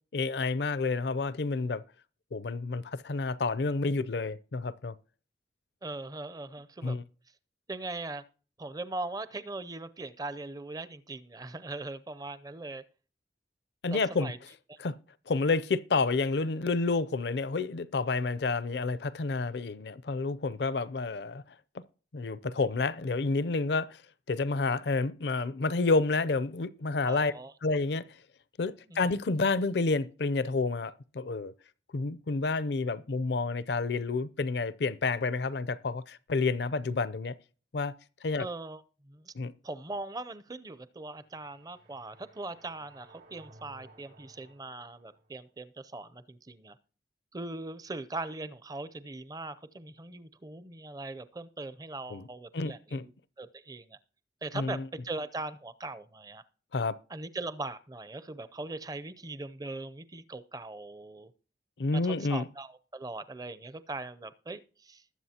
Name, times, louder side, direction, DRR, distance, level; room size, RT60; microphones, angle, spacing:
voice 1, 0.1-1.8 2.3-5.0 6.8-7.0 13.8-14.3 14.8-15.0 15.3-21.4 22.1-24.0 24.3-27.3 27.6-28.0 28.6-31.5 31.9-37.3 37.7-37.9 38.2-38.5 39.3-39.5 52.1-52.3 52.5-53.0 54.5-54.9 56.7-57.0 61.8-62.5, left 3 dB, 65° left, 0.5 m, -29 dB
voice 2, 5.8-7.0 7.7-8.2 8.6-12.8 13.9-14.4 14.7-14.8 27.0-27.5 28.9-29.1 38.4-39.3 39.6-46.8 47.3-53.1 53.4-54.0 54.4-56.4 57.1-61.3 61.9-65.0, right 2 dB, 20° right, 0.5 m, -40 dB
sound 1, 41.1-45.4, right 2 dB, 85° right, 3.2 m, -58 dB
20.5 x 7.7 x 2.8 m
head